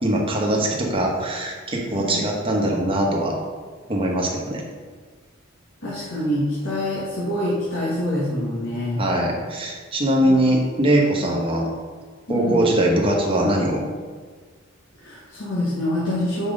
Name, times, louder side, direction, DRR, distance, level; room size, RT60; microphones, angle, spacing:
voice 1, 0.0-3.3 3.9-4.6 9.0-11.7 12.3-13.8, right 1 dB, 25° right, -1 dB, 1.1 m, -21 dB
voice 2, 5.8-9.0 10.2-10.4 12.3-12.7 15.0-16.5, left 1 dB, 70° left, -8 dB, 1.6 m, -26 dB
5.7 x 4.6 x 5.0 m, 1.5 s
head